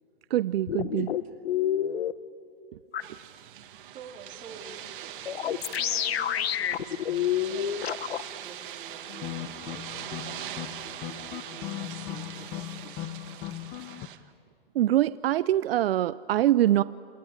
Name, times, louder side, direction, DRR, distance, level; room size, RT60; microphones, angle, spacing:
voice 1, 0.3-1.2 14.8-16.8, right 13 dB, 75° right, 16 dB, 0.6 m, -24 dB
sound 1, 0.7-2.1 2.9-3.0 5.3-8.2, left 10 dB, 85° left, 1.1 m, -28 dB
sound 2, 3.0-14.2, right 11 dB, 60° right, 2.0 m, -42 dB
voice 2, 3.9-7.8 8.1-13.0, right 5 dB, 25° right, 1 dB, 3.0 m, -48 dB
sound 3, 9.1-14.1, left 13 dB, 30° left, 0.9 m, -38 dB
28.0 x 19.5 x 10.0 m, 2.5 s
hypercardioid pair, 145°, 30 cm